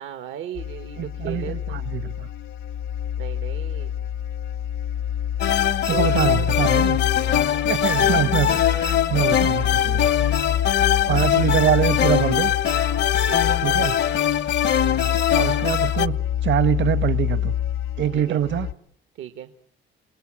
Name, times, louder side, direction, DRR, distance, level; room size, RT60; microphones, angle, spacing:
voice 1, 0.0-1.8 3.2-3.9 5.9-6.7 7.2-7.3 13.2-13.6 18.1-18.4 19.1-19.5, right 10 dB, 85° right, 9 dB, 1.4 m, -36 dB
sound 1, 0.5-18.7, left 10 dB, 75° left, 1.4 m, -27 dB
voice 2, 0.9-2.3 5.9-7.0 7.7-10.1 11.1-12.5 13.6-14.0 15.3-16.1 16.4-17.5 18.0-18.7, right 10 dB, 70° right, 13 dB, 1.2 m, -24 dB
sound 2, 5.4-16.1, left 10 dB, 60° left, 1.0 m, -22 dB
29.0 x 19.5 x 8.7 m, 0.66 s
cardioid pair, 90°, 20 cm